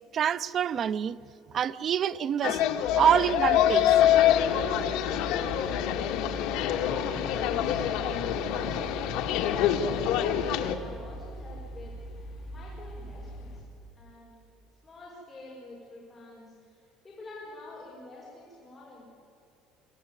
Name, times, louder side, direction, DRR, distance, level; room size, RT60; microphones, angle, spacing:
voice 1, 0.1-1.2 1.5-2.6 3.0-3.9, right 9 dB, 35° right, 16 dB, 0.5 m, -26 dB
sound 1, 2.4-10.8, left 10 dB, 70° left, 1.8 m, -25 dB
sound 2, 2.8-13.6, equal, 45° left, 5.4 m, -42 dB
voice 2, 6.8-9.3 9.8-11.9 12.5-13.6 14.0-14.4 14.8-16.8 17.0-19.0, left 2 dB, 15° left, -6 dB, 5.3 m, -47 dB
23.5 x 17.5 x 9.6 m, 2.5 s
cardioid pair, 170°, 0 cm